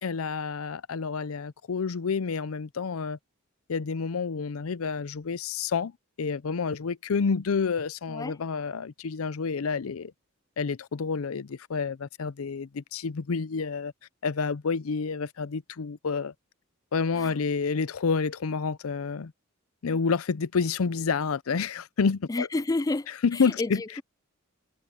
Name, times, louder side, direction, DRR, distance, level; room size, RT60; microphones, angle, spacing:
voice 1, 0.0-3.2 3.7-5.9 6.2-10.1 10.6-13.9 14.2-16.3 16.9-19.3 19.8-22.5 23.2-23.8, left 5 dB, 85° left, 0.6 m, -29 dB
voice 2, 22.3-24.0, left 2 dB, 15° left, 0.4 m, -31 dB
head